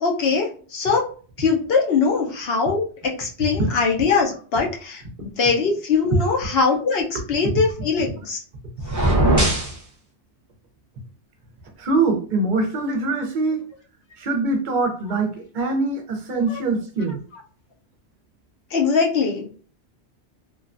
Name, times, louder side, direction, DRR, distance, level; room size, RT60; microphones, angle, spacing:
voice 1, 0.0-1.0 1.4-8.4 16.3-16.6 18.7-19.5, left 5 dB, 65° left, 1 dB, 0.8 m, -22 dB
sound 1, 8.8-9.8, right 1 dB, 20° right, 0.7 m, -19 dB
voice 2, 11.8-13.6 14.2-17.2, right 3 dB, 55° right, 4 dB, 0.6 m, -23 dB
3.1 x 2.1 x 2.4 m, 0.41 s
omnidirectional pair, 1.1 m